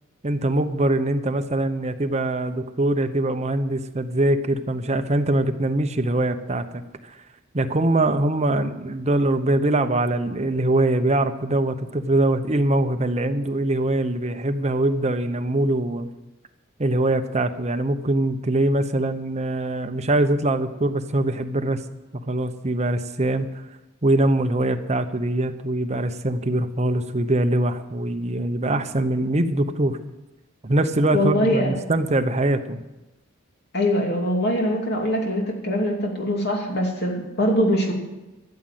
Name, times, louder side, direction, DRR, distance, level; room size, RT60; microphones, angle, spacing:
voice 1, 0.2-7.2 7.5-16.1 16.8-21.8 22.1-23.5 24.0-30.0 30.6-32.8, right 1 dB, 35° right, 8 dB, 0.8 m, -23 dB
voice 2, 31.1-31.7 33.7-37.9, equal, 55° left, 1 dB, 2.8 m, -22 dB
13.0 x 7.6 x 9.0 m, 1.0 s
head